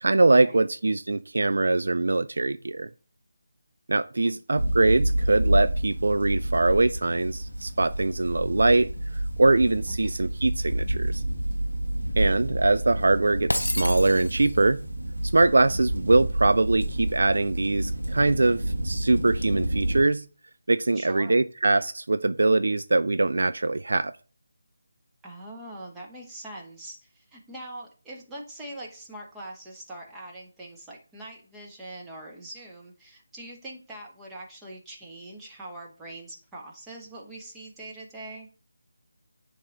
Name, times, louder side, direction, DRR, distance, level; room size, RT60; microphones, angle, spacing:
voice 1, 0.0-2.9 3.9-8.9 9.4-11.2 12.2-14.8 15.3-20.3 20.7-24.1, right 2 dB, 60° right, 0.3 m, -22 dB
sound 1, 4.6-20.0, right 1 dB, 90° right, 1.6 m, -29 dB
Shatter, 13.5-14.7, left 1 dB, 80° left, 0.5 m, -30 dB
voice 2, 20.9-21.4 25.2-38.5, right 1 dB, 5° right, 1.3 m, -43 dB
10.0 x 3.4 x 3.8 m
figure-of-eight pair, 155°, 0 cm